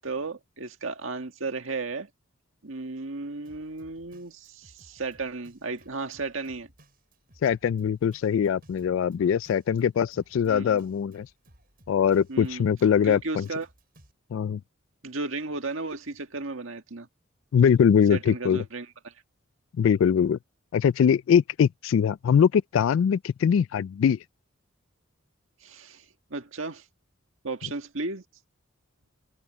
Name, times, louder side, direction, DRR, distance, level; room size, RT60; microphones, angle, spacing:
voice 1, 0.0-2.1 2.6-6.7 10.4-10.8 12.3-12.7 13.0-13.7 15.0-17.1 18.1-19.1 25.6-26.0 26.3-26.8 27.4-28.2, right 3 dB, 75° right, 1.9 m, -34 dB
Drum kit, 3.4-14.1, right 1 dB, 45° right, 5.6 m, -58 dB
voice 2, 7.4-11.3 11.9-13.5 14.3-14.6 17.5-18.6 19.8-20.4 20.7-24.2, left 7 dB, 70° left, 0.3 m, -22 dB
head